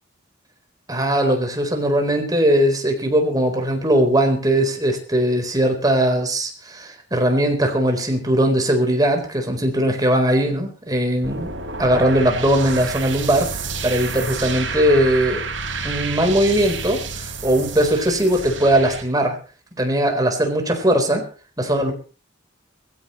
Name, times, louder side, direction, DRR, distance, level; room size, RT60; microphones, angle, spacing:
voice 1, 0.9-11.5 11.8-15.4 15.8-19.4 19.8-21.3 21.6-21.9, right 1 dB, 20° right, 3 dB, 4.1 m, -19 dB
sound 1, 11.2-19.0, right 4 dB, 85° right, 4.3 m, -29 dB
21.5 x 16.0 x 3.2 m, 0.36 s
head